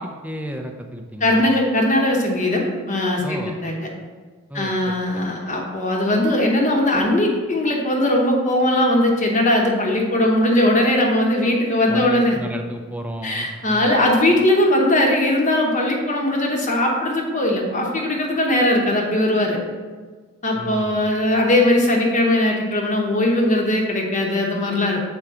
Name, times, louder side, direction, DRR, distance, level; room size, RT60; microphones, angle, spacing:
voice 1, 0.0-1.4 3.2-3.6 4.5-5.3 11.9-14.1 20.5-21.1, equal, 5° right, 4 dB, 0.4 m, -33 dB
voice 2, 1.2-3.9 4.5-12.4 13.2-19.6 20.4-25.0, left 1 dB, 35° left, 0 dB, 0.9 m, -19 dB
6.9 x 4.4 x 3.7 m, 1.4 s
head